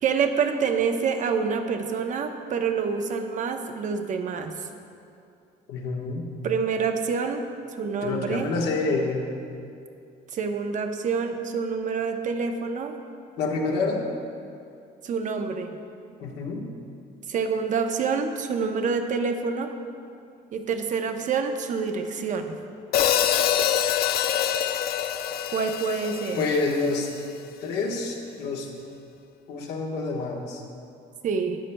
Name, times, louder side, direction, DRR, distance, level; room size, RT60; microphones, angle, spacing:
voice 1, 0.0-4.5 6.4-7.4 7.7-8.5 10.3-12.9 15.0-15.8 17.3-19.7 20.5-22.5 25.5-26.4 31.2-31.6, right 5 dB, 50° right, 6 dB, 0.8 m, -27 dB
voice 2, 5.7-6.3 8.0-9.3 13.4-14.1 16.2-16.7 26.3-27.1 27.6-28.7 29.5-30.6, left 3 dB, 80° left, -1 dB, 1.3 m, -27 dB
Hi-hat, 22.9-27.1, left 10 dB, 65° left, 0.4 m, -25 dB
13.0 x 9.6 x 2.2 m, 2.5 s
cardioid pair, 110°, 17 cm